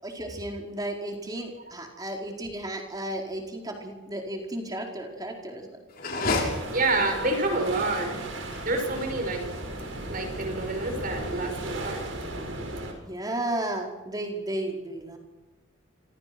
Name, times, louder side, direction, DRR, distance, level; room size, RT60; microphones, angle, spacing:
voice 1, 0.0-5.7 13.0-15.2, right 1 dB, 20° right, 1 dB, 4.7 m, -33 dB
sound 1, 5.9-12.0, left 2 dB, 45° left, 7.3 m, -34 dB
sound 2, 6.5-12.9, right 1 dB, 70° right, 6.5 m, -36 dB
voice 2, 6.7-8.2 8.6-9.4 10.1-12.1, right 2 dB, 45° right, 5 dB, 6.1 m, -28 dB
28.0 x 26.5 x 6.2 m, 1.1 s
head